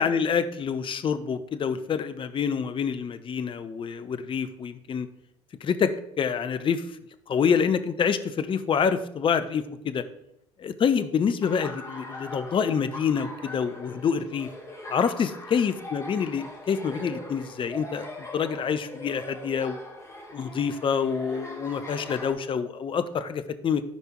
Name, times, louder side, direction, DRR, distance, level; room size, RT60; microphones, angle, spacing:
voice 1, 0.0-5.1 5.6-6.9 7.3-10.0 10.6-14.5 14.9-19.8 20.3-23.8, left 6 dB, 35° left, 11 dB, 0.9 m, -27 dB
Laughter, 11.4-22.3, left 1 dB, 20° left, 3.5 m, -41 dB
13.5 x 5.4 x 4.6 m, 0.77 s
hypercardioid pair, 60°, 14 cm